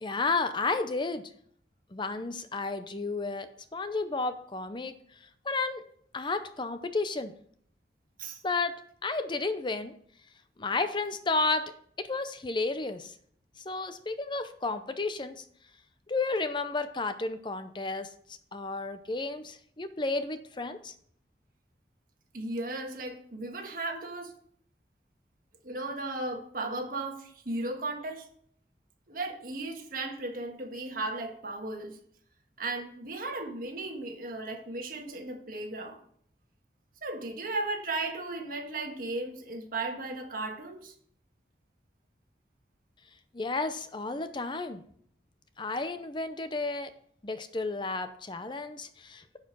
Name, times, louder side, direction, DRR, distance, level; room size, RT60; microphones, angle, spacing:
voice 1, 0.0-1.2 1.9-4.9 5.4-5.8 6.1-7.3 8.4-8.8 9.0-9.9 10.6-11.7 12.0-13.1 13.7-15.4 16.1-18.1 18.5-20.9 43.3-44.8 45.6-46.9 47.2-49.4, left 3 dB, 25° left, 10 dB, 0.6 m, -32 dB
voice 2, 22.3-24.3 25.6-28.3 29.1-32.0 32.6-36.0 37.0-40.9, right 2 dB, 50° right, 3 dB, 1.5 m, -35 dB
10.0 x 4.8 x 6.0 m, 0.63 s
head